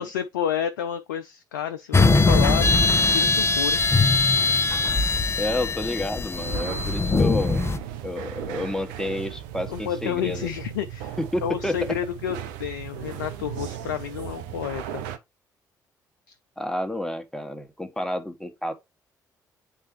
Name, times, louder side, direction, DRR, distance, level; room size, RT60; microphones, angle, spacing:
voice 1, 0.0-3.8 9.7-15.0 16.3-16.4, left 9 dB, 80° left, 0.4 m, -30 dB
sound 1, 1.9-7.8, left 3 dB, 25° left, 0.8 m, -21 dB
voice 2, 5.0-7.6 8.0-10.5 11.2-11.9 16.6-18.7, left 1 dB, 5° left, 1.4 m, -30 dB
sound 2, 6.4-15.2, right 11 dB, 75° right, 0.7 m, -36 dB
8.9 x 3.5 x 3.1 m
figure-of-eight pair, 45°, 10 cm